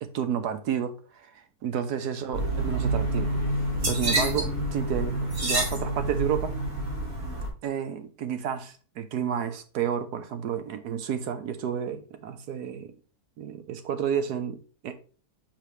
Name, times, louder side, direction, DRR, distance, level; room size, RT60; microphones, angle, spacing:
voice 1, 0.0-3.3 3.9-6.6 7.6-12.9 13.4-15.0, right 8 dB, 90° right, 1.4 m, -31 dB
sound 1, 2.3-7.5, right 1 dB, 65° right, 3.5 m, -28 dB
6.3 x 5.9 x 3.3 m
omnidirectional pair, 1.6 m